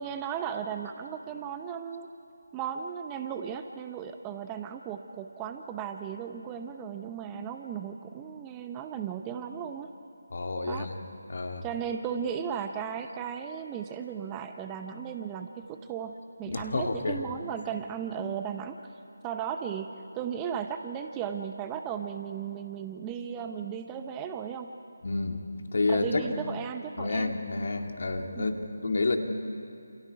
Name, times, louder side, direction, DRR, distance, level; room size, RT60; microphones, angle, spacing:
voice 1, 0.0-2.1 2.5-9.9 10.7-10.9 11.6-18.8 19.2-24.7 25.9-27.3 28.4-28.5, right 8 dB, 15° right, 7 dB, 0.8 m, -36 dB
voice 2, 10.3-10.9 11.3-11.7 16.5-17.2 25.0-26.3 27.0-29.2, left 3 dB, 60° left, 4 dB, 2.4 m, -29 dB
28.5 x 28.5 x 4.8 m, 2.6 s
figure-of-eight pair, 160°, 0 cm